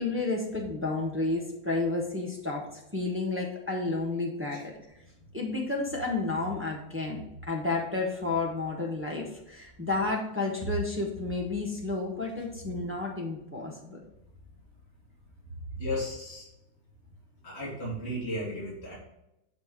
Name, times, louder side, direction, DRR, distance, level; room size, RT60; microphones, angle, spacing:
voice 1, 0.0-2.7 2.9-4.7 5.3-14.0, left 3 dB, 10° right, -1 dB, 0.8 m, -31 dB
voice 2, 15.8-16.4 17.4-19.0, left 1 dB, 30° left, -7 dB, 2.7 m, -35 dB
7.4 x 4.3 x 4.8 m, 0.85 s
omnidirectional pair, 2.2 m